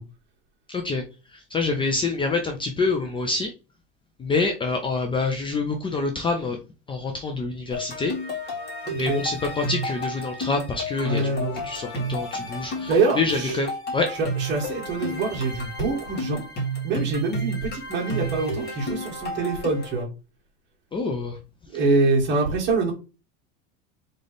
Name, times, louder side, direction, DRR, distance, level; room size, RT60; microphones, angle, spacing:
voice 1, 0.7-1.0 1.3-3.5 4.2-6.6 6.9-8.1 8.9-14.1 20.9-21.4, left 3 dB, 15° left, 3 dB, 0.6 m, -26 dB
sound 1, 7.7-20.0, right 1 dB, 35° left, 2.3 m, -32 dB
voice 2, 8.9-9.2 11.0-11.6 12.6-13.6 14.1-16.4 16.8-20.1 21.7-22.9, right 3 dB, 35° right, -2 dB, 2.3 m, -25 dB
3.9 x 3.9 x 3.5 m, 0.31 s
supercardioid pair, 140°, 30 cm